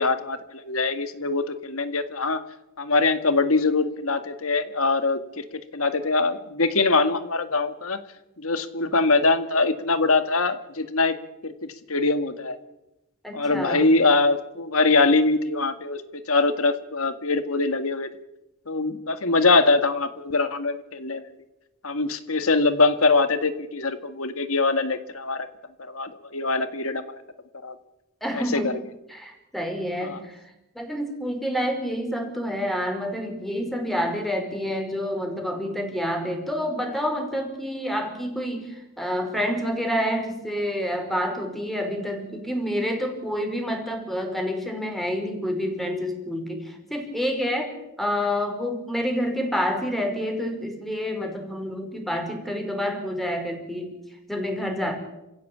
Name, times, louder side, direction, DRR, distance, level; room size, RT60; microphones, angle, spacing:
voice 1, 0.0-2.4 2.8-5.4 5.7-8.0 8.4-11.2 11.4-11.5 11.9-12.6 13.3-16.0 16.3-18.1 18.7-21.2 21.8-25.5 25.8-27.0 27.6-27.7 28.3-28.7 30.0-30.2, left 3 dB, 70° left, 9 dB, 2.0 m, -23 dB
voice 2, 13.2-13.9 28.2-28.7 29.1-30.4 30.8-53.9 54.3-55.0, equal, ahead, 3 dB, 5.2 m, -28 dB
28.0 x 16.0 x 8.7 m, 0.96 s
head